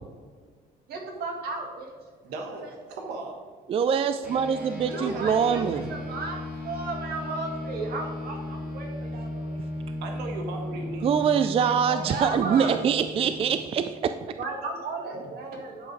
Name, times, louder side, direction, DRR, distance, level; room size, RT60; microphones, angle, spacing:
voice 1, 0.9-1.9 2.6-2.7 4.8-9.5 10.7-10.9 11.9-12.8 14.4-15.9, right 3 dB, 65° right, 1 dB, 2.1 m, -35 dB
voice 2, 2.2-3.5 4.9-5.9 10.0-11.0 11.6-11.8 13.1-13.2, right 2 dB, 85° right, 3 dB, 1.2 m, -37 dB
voice 3, 3.7-5.8 11.0-14.2, right 7 dB, 35° right, 10 dB, 0.4 m, -24 dB
sound 1, 4.2-14.0, left 1 dB, 10° right, 2.4 m, -36 dB
9.6 x 5.5 x 4.6 m, 1.6 s
cardioid pair, 110°, 17 cm